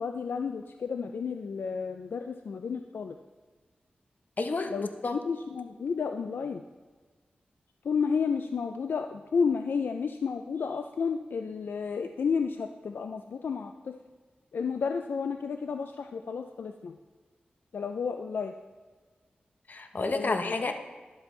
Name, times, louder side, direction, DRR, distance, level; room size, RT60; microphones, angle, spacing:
voice 1, 0.0-3.2 4.7-6.6 7.8-14.0 14.5-17.0 17.7-18.5 20.1-20.7, left 5 dB, 85° left, 6 dB, 0.4 m, -32 dB
voice 2, 4.4-4.7 5.0-5.2 19.7-20.7, left 3 dB, 60° left, 6 dB, 0.9 m, -30 dB
11.0 x 8.0 x 3.2 m, 1.4 s
cardioid pair, 50°, 3 cm